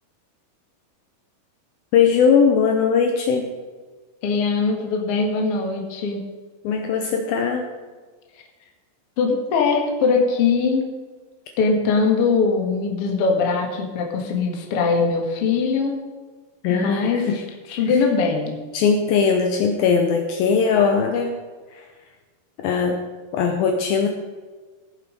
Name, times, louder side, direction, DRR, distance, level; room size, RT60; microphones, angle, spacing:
voice 1, 1.9-3.5 6.6-7.7 16.6-17.4 17.9-18.0 18.7-21.4 21.7-21.9 22.6-23.0 23.3-24.1, left 6 dB, 75° left, 4 dB, 2.4 m, -19 dB
voice 2, 4.2-6.2 9.2-10.9 11.6-16.0 16.7-17.4 17.7-18.5, left 4 dB, 50° left, 1 dB, 2.0 m, -21 dB
17.0 x 7.4 x 5.2 m, 1.4 s
omnidirectional pair, 4.8 m